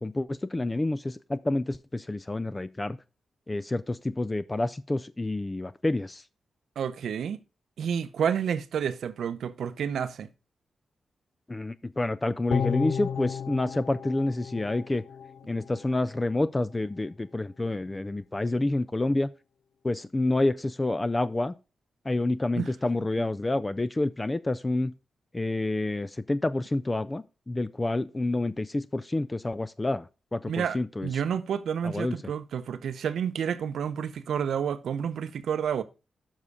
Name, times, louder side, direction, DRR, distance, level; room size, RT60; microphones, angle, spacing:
voice 1, 0.0-3.0 3.5-6.2 11.5-15.0 15.5-19.3 19.8-21.5 22.1-24.9 25.3-31.1 31.8-32.2, left 2 dB, 20° left, 0.3 m, -28 dB
voice 2, 6.8-7.4 7.8-10.3 22.5-22.7 30.5-30.8 31.0-35.8, right 8 dB, 85° right, 0.6 m, -30 dB
sound 1, 12.5-15.8 16.2-16.3, left 7 dB, 90° left, 0.5 m, -33 dB
7.2 x 5.7 x 4.7 m
cardioid pair, 100°, 0 cm